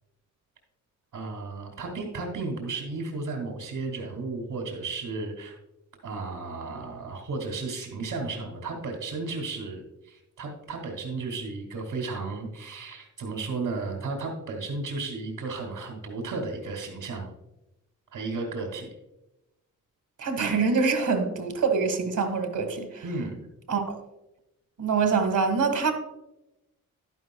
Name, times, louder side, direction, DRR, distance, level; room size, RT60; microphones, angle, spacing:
voice 1, 1.1-5.6 6.0-17.3 18.1-18.9 23.0-23.5, right 3 dB, 80° right, 2.3 m, -34 dB
voice 2, 20.2-23.0 23.7-24.0 24.8-25.9, right 5 dB, 65° right, 1.8 m, -25 dB
11.5 x 11.0 x 2.3 m
cardioid pair, 80°, 33 cm